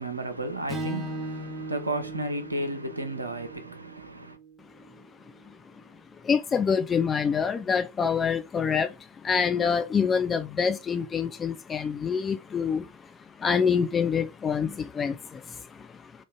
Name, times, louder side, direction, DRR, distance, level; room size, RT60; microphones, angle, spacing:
voice 1, 0.0-4.4, right 2 dB, 80° right, 0.6 m, -33 dB
Strum, 0.7-5.0, right 1 dB, 10° right, 1.1 m, -38 dB
voice 2, 6.2-12.9 13.4-15.9, left 6 dB, 20° left, 0.4 m, -26 dB
3.6 x 2.4 x 3.9 m
figure-of-eight pair, 90°, 0 cm